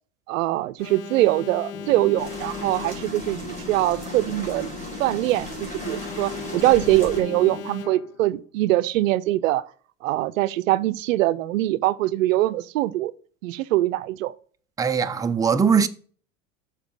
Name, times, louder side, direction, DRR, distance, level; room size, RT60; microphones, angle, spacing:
voice 1, 0.3-4.7 5.0-9.6 10.0-13.1 13.4-14.3, right 16 dB, 80° right, 0.6 m, -23 dB
Alarm, 0.8-3.3 5.8-8.3, left 8 dB, 90° left, 0.9 m, -38 dB
sound 1, 1.7-7.6, left 3 dB, 70° left, 2.1 m, -38 dB
sound 2, 2.2-7.2, equal, 20° left, 4.1 m, -39 dB
voice 2, 14.8-15.9, right 6 dB, 10° right, 0.5 m, -20 dB
6.9 x 4.8 x 5.3 m
hypercardioid pair, 85°, 39 cm